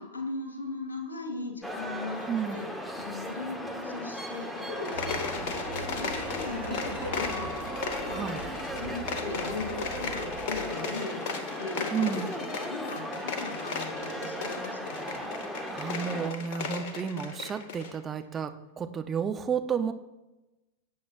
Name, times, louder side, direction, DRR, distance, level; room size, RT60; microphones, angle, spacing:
voice 1, 0.0-2.6 3.0-8.3 8.7-15.3, left 3 dB, 70° left, 3 dB, 2.2 m, -39 dB
sound 1, 1.6-16.3, equal, 5° left, 1.2 m, -37 dB
voice 2, 2.3-2.6 8.1-8.4 11.9-12.3 15.7-19.9, right 7 dB, 20° right, 7 dB, 0.8 m, -31 dB
sound 2, 4.8-18.0, left 5 dB, 50° left, 1.3 m, -37 dB
Laughter, 4.9-10.7, right 1 dB, 90° right, 1.7 m, -42 dB
18.0 x 8.5 x 2.5 m, 1.0 s
figure-of-eight pair, 90°, 0 cm